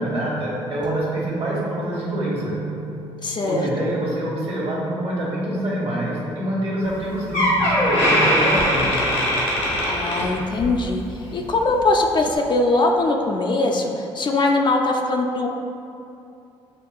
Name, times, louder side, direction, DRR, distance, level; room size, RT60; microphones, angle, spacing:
voice 1, 0.0-2.5 3.4-9.0, right 1 dB, 55° right, -5 dB, 1.3 m, -26 dB
sound 1, 0.8-8.1, right 5 dB, 35° right, 0.5 m, -37 dB
voice 2, 3.2-3.7 9.9-11.0 11.3-15.5, left 2 dB, 40° left, 2 dB, 0.4 m, -21 dB
Door, 6.9-7.0 7.3-10.8 11.2-11.5 12.2-12.3, equal, 85° left, 1.1 m, -20 dB
6.4 x 2.3 x 2.2 m, 2.6 s
supercardioid pair, 65°, 12 cm